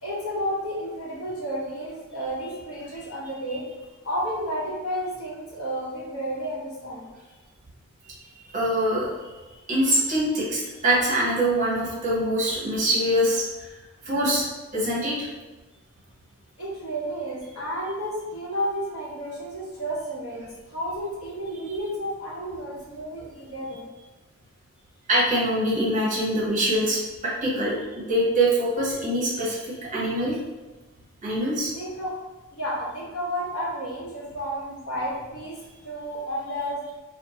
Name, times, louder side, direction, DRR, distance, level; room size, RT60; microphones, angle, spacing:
voice 1, 0.0-3.7 4.0-7.1 16.6-23.9 31.7-32.1 32.5-35.6 35.8-36.8, equal, 75° left, -6 dB, 1.0 m, -31 dB
voice 2, 8.5-9.1 9.7-13.7 14.0-14.5 14.7-15.3 25.1-30.4 31.2-31.7, right 1 dB, 35° right, -6 dB, 0.8 m, -24 dB
2.6 x 2.2 x 2.8 m, 1.2 s
head